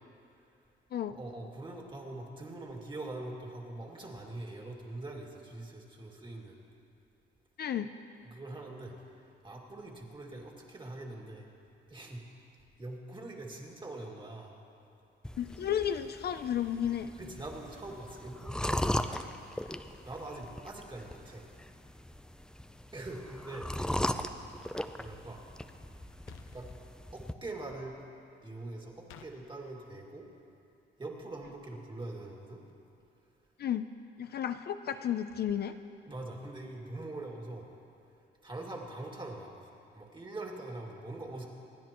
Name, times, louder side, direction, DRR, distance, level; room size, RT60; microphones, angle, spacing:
voice 1, 1.1-6.6 8.2-8.9 9.4-11.5 11.9-12.2 12.8-14.5 17.2-19.3 20.0-21.4 22.9-23.9 25.0-25.4 26.5-26.7 27.1-28.0 28.4-30.3 31.0-32.6 36.1-37.7 38.4-41.5, right 2 dB, 25° right, -1 dB, 2.3 m, -43 dB
voice 2, 7.6-7.9 15.4-17.1 33.6-33.9 34.2-35.7, left 9 dB, 55° left, 9 dB, 0.5 m, -32 dB
sound 1, 15.2-27.3, left 1 dB, 5° left, 0.5 m, -38 dB
sound 2, 26.3-26.8 29.1-29.3, left 9 dB, 90° left, 0.8 m, -52 dB
27.5 x 10.0 x 3.0 m, 2.6 s
cardioid pair, 90°, 20 cm